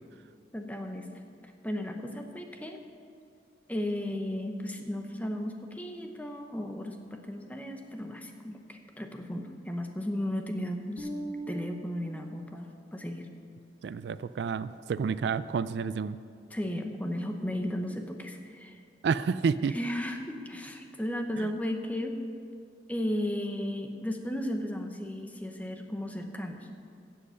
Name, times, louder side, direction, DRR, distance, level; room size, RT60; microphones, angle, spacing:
voice 1, 0.5-1.1 1.6-2.8 3.7-11.1 11.5-13.3 16.5-18.8 19.7-22.2 22.9-26.7, left 1 dB, 10° left, 4 dB, 0.9 m, -35 dB
Bass guitar, 11.0-13.4, right 1 dB, 30° right, 1.4 m, -42 dB
voice 2, 13.8-16.2 19.0-19.8 21.4-21.5, right 5 dB, 70° right, 15 dB, 0.3 m, -29 dB
15.0 x 7.6 x 5.7 m, 2.3 s
head